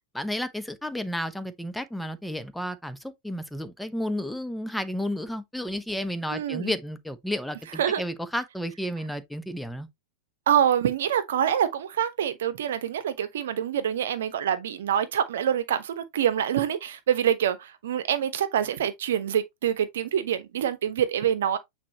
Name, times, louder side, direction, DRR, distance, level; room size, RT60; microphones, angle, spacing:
voice 1, 0.1-9.9, equal, ahead, 0.9 m, -32 dB
voice 2, 6.3-6.7 7.8-8.0 10.5-21.6, right 9 dB, 60° right, 1.0 m, -26 dB
8.6 x 4.4 x 2.9 m
figure-of-eight pair, 90°, 0 cm